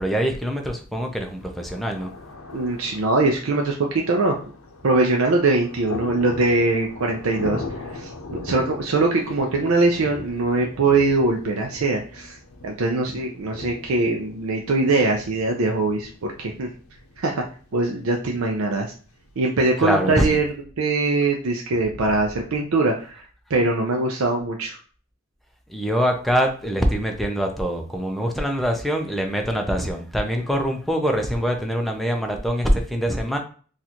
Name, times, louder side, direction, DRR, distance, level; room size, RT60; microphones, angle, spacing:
voice 1, 0.0-2.1 19.8-20.3 25.7-33.4, equal, ahead, 2 dB, 0.5 m, -24 dB
Thunder, 1.1-20.1, left 2 dB, 85° left, 0.6 m, -40 dB
voice 2, 2.5-4.3 4.8-7.6 7.9-12.4 12.6-16.7 17.2-17.4 17.7-18.9 19.4-20.5 20.8-23.2 23.5-24.8, right 3 dB, 80° right, 1 dB, 0.5 m, -22 dB
4.1 x 2.5 x 2.8 m, 0.41 s
head